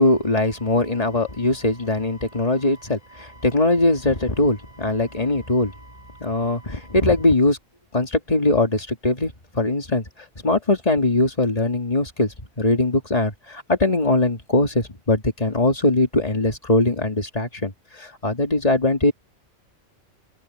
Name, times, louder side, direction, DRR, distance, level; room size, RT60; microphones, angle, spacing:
voice 1, 0.0-5.8 6.2-7.6 7.9-10.0 10.4-17.7 18.0-19.1, left 2 dB, 30° left, 2.4 m, -21 dB
open air
omnidirectional pair, 1.2 m